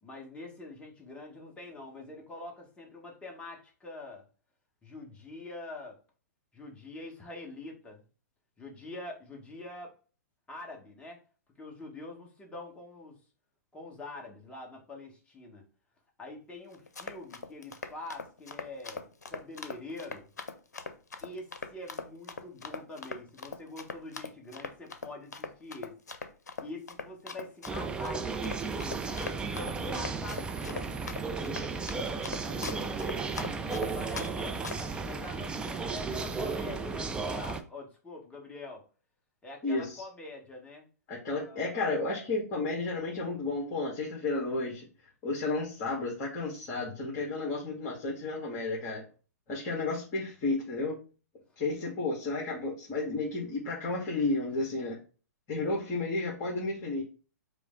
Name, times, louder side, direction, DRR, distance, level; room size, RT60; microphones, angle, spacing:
voice 1, 0.0-4.3 4.8-6.0 6.5-8.0 8.6-10.0 10.5-11.2 11.6-13.2 13.7-15.7 16.2-20.3 21.2-26.0 26.6-30.9 32.2-33.0 33.6-38.8 39.4-40.9 41.3-41.7 51.5-51.9, left 2 dB, 10° left, 0 dB, 1.2 m, -45 dB
Run, 16.7-34.3 34.6-35.0, left 4 dB, 85° left, 0.6 m, -40 dB
sound 1, 27.7-37.6, right 4 dB, 10° right, 0.4 m, -34 dB
voice 2, 39.6-40.0 41.1-44.9 45.2-49.0 49.5-51.0 51.6-55.0 55.5-57.0, left 3 dB, 35° left, -3 dB, 1.4 m, -32 dB
4.9 x 2.0 x 3.7 m, 0.35 s
hypercardioid pair, 120°, 9 cm